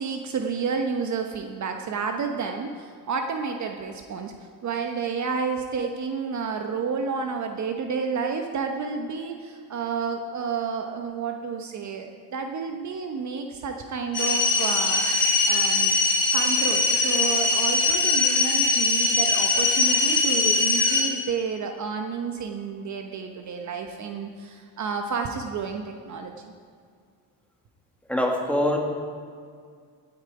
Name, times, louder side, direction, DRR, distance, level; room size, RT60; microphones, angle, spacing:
voice 1, 0.0-4.3 4.6-16.0 16.3-26.5, right 5 dB, 45° right, 4 dB, 1.0 m, -30 dB
sound 1, 14.1-21.0, left 3 dB, 25° left, 3.0 m, -21 dB
voice 2, 28.1-28.8, left 1 dB, 5° left, 0 dB, 1.7 m, -23 dB
17.0 x 9.0 x 4.8 m, 2.1 s
cardioid pair, 125°, 42 cm